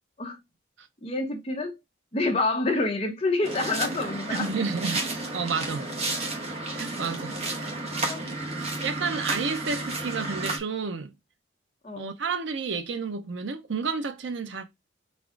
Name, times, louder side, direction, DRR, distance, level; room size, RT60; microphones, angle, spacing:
voice 1, 1.0-1.8 2.1-4.5 8.1-8.2 11.8-12.1, left 2 dB, 30° left, 1.0 m, -27 dB
sound 1, 3.4-10.6, right 2 dB, 30° right, 1.1 m, -32 dB
voice 2, 4.3-5.0 5.3-5.8 6.8-7.4 8.8-11.1 12.0-14.6, right 5 dB, 70° right, 0.6 m, -30 dB
4.1 x 2.4 x 4.5 m
head